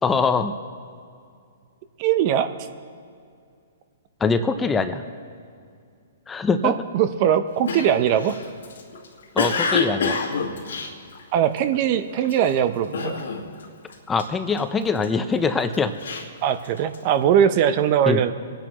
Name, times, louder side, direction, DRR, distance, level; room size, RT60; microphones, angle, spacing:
voice 1, 0.0-0.5 4.2-5.0 6.3-6.7 9.3-10.2 14.1-15.9 18.1-18.2, left 4 dB, 15° left, 9 dB, 0.7 m, -23 dB
voice 2, 2.0-2.5 6.6-8.4 11.3-13.2 16.4-18.3, right 9 dB, 40° right, 11 dB, 0.7 m, -20 dB
Cough, 7.7-11.7 12.2-12.5 12.9-13.6 13.9-15.1 15.6-17.1, left 4 dB, 80° left, 1.8 m, -27 dB
25.0 x 10.0 x 3.1 m, 2.3 s
hypercardioid pair, 135°, 0 cm